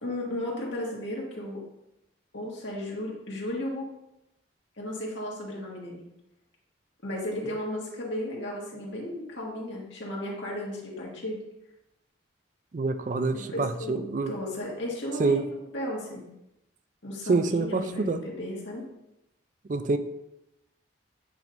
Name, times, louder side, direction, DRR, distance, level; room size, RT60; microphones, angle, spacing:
voice 1, 0.0-1.6 2.3-3.9 4.8-6.1 7.0-11.4 13.3-16.3 17.0-18.8, left 1 dB, 75° left, -3 dB, 1.8 m, -34 dB
voice 2, 12.7-14.3 15.2-15.4 17.3-18.2 19.7-20.0, right 3 dB, 40° right, 9 dB, 0.4 m, -26 dB
8.8 x 5.3 x 2.6 m, 0.87 s
head